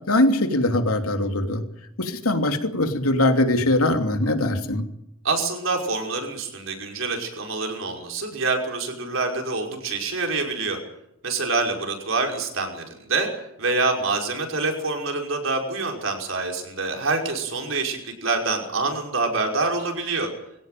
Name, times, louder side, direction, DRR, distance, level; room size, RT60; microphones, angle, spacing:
voice 1, 0.1-1.6 2.0-4.8, left 1 dB, 85° left, 5 dB, 2.9 m, -21 dB
voice 2, 5.2-10.8 11.2-13.3 13.6-20.3, right 3 dB, 65° right, 3 dB, 5.6 m, -26 dB
23.0 x 16.5 x 9.2 m, 0.81 s
head